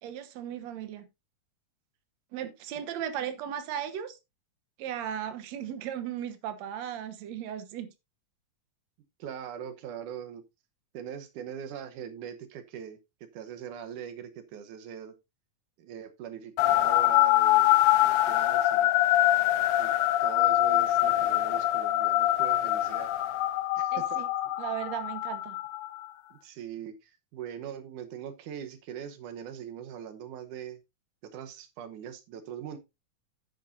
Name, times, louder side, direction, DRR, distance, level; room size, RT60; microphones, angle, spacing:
voice 1, 0.0-1.1 2.3-4.2 4.8-7.9 23.9-24.3 24.6-25.6, right 10 dB, 65° right, 2.4 m, -36 dB
voice 2, 9.2-10.4 10.9-15.1 15.8-18.9 19.8-19.9 20.2-23.1 23.8-24.3 26.3-30.8 31.3-32.8, right 9 dB, 90° right, 2.6 m, -41 dB
sound 1, 16.6-26.0, left 15 dB, 80° left, 2.2 m, -24 dB
11.0 x 9.2 x 2.6 m
omnidirectional pair, 3.5 m